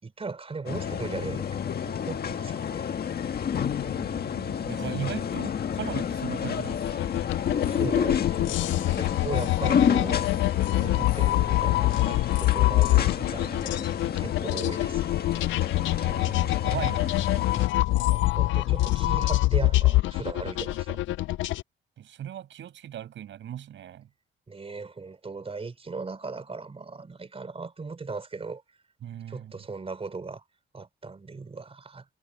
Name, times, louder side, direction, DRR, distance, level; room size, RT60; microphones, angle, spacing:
voice 1, 0.0-2.9 7.6-10.2 10.6-13.8 14.1-15.1 18.1-21.0 24.5-28.6 29.3-30.4 30.7-32.1, right 4 dB, 30° right, 4.0 m, -38 dB
sound 1, 0.7-17.7, left 8 dB, 50° left, 1.6 m, -30 dB
voice 2, 3.6-7.1 15.9-17.4 22.0-24.1 29.0-29.5, right 10 dB, 70° right, 6.2 m, -38 dB
sound 2, 6.5-21.6, left 17 dB, 75° left, 0.4 m, -25 dB
cardioid pair, 90°, 20 cm